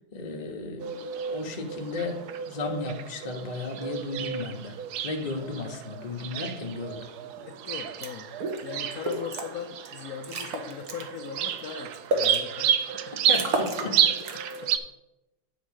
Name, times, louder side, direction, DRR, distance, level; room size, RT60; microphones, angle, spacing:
voice 1, 0.1-4.8 5.0-7.0 13.3-13.9, left 3 dB, 30° left, 2 dB, 0.7 m, -34 dB
sound 1, 0.8-14.8, right 9 dB, 75° right, 0.9 m, -31 dB
voice 2, 7.2-8.3 8.6-13.1 13.8-13.9 14.3-14.7, left 8 dB, 65° left, 2 dB, 0.9 m, -39 dB
sound 2, 8.0-8.1 8.4-8.6 9.0-9.5 9.9-10.0 10.2-11.0 11.5-12.4 12.9-13.0 13.3-13.9 14.2-14.6, right 2 dB, 50° right, 1.4 m, -30 dB
9.5 x 4.2 x 6.3 m, 0.96 s
omnidirectional pair, 2.2 m